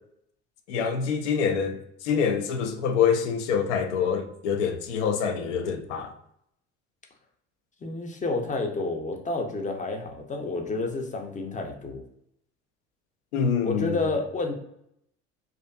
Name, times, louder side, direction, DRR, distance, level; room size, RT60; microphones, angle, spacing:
voice 1, 0.7-6.1 13.3-14.0, left 6 dB, 75° left, 0.5 m, -26 dB
voice 2, 7.8-12.0 13.6-14.5, left 3 dB, 20° left, 0.6 m, -30 dB
2.5 x 2.5 x 2.3 m
hypercardioid pair, 60°, 35 cm